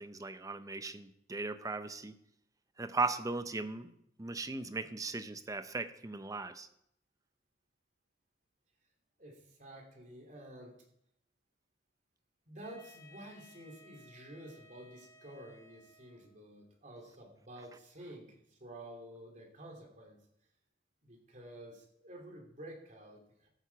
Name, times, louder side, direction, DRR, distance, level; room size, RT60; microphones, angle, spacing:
voice 1, 0.0-2.1 2.8-3.9 4.2-6.7, right 3 dB, 20° right, 11 dB, 0.6 m, -37 dB
voice 2, 9.2-10.8 12.5-20.2 21.0-23.5, right 1 dB, 45° right, 1 dB, 2.9 m, -51 dB
Wind instrument woodwind instrument, 12.6-16.5, left 2 dB, 15° left, 1.4 m, -60 dB
13.5 x 8.6 x 4.7 m, 0.75 s
head